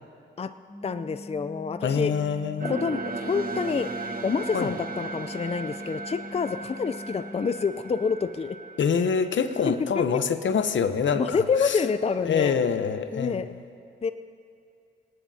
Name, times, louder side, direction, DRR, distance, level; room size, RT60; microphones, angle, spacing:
sound 1, 0.7-7.7, left 2 dB, 10° left, 2.2 m, -42 dB
voice 1, 0.8-2.1 2.6-3.9 4.2-8.6 10.0-10.1 11.1-12.5 13.1-13.5 14.0-14.1, left 5 dB, 30° left, 11 dB, 0.5 m, -27 dB
voice 2, 1.8-2.7 4.5-4.7 8.8-11.8 12.2-13.6, left 6 dB, 65° left, 10 dB, 0.8 m, -25 dB
sound 2, 2.6-9.8, right 4 dB, 45° right, 1.1 m, -37 dB
20.0 x 18.5 x 2.8 m, 2.4 s
supercardioid pair, 55°, 21 cm